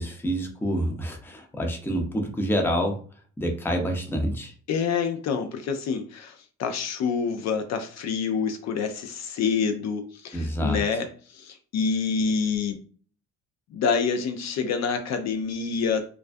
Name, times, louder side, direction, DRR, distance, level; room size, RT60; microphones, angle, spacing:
voice 1, 0.0-3.0 3.4-4.5 10.3-10.8, equal, 5° left, 2 dB, 0.5 m, -27 dB
voice 2, 4.7-11.1 11.3-12.8 13.7-16.0, left 5 dB, 60° left, 6 dB, 0.4 m, -27 dB
2.3 x 2.2 x 2.5 m, 0.43 s
cardioid pair, 90°, 30 cm